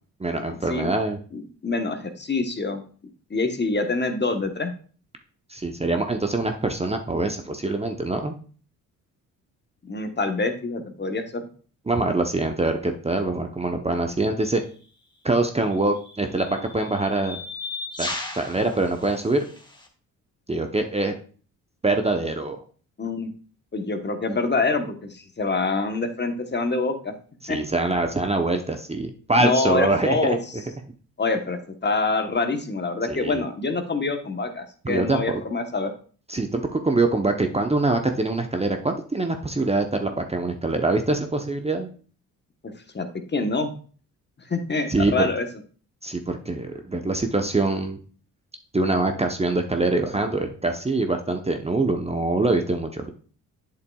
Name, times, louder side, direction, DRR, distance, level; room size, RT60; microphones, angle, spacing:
voice 1, 0.2-1.2 5.5-8.4 11.9-14.6 15.2-17.4 18.0-19.5 20.5-21.1 21.8-22.6 27.5-30.4 33.1-33.4 34.8-35.4 36.3-41.9 44.9-45.3 46.0-48.0 48.7-53.1, right 2 dB, 15° right, 5 dB, 0.8 m, -24 dB
voice 2, 1.3-2.8 3.3-4.7 9.8-11.4 23.0-23.3 23.7-27.1 27.5-27.6 29.4-30.4 31.2-35.9 42.9-43.1 43.3-43.7 44.5-45.5, left 3 dB, 30° left, 7 dB, 1.1 m, -25 dB
sound 1, 14.5-14.7 15.7-19.9, left 3 dB, 10° left, 1.5 m, -36 dB
8.1 x 6.7 x 2.3 m, 0.41 s
supercardioid pair, 60°, 37 cm